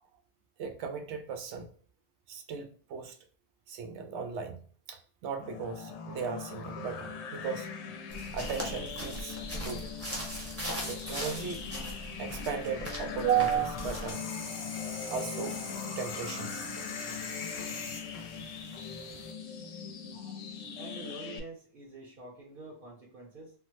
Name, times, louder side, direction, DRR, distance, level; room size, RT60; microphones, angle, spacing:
voice 1, 0.6-1.7 2.3-3.2 3.7-4.6 4.9-7.7 8.3-9.9 10.9-11.6 12.2-14.2 15.1-15.6 16.0-16.7 20.1-20.4, right 8 dB, 85° right, 0.9 m, -35 dB
sound 1, 5.4-21.4, left 6 dB, 80° left, 0.8 m, -41 dB
sound 2, 8.1-14.1, equal, 15° right, 0.7 m, -39 dB
sound 3, 13.4-19.3, left 4 dB, 45° left, 0.5 m, -42 dB
voice 2, 20.7-23.5, right 3 dB, 55° right, 0.9 m, -47 dB
3.4 x 2.0 x 3.0 m
omnidirectional pair, 1.1 m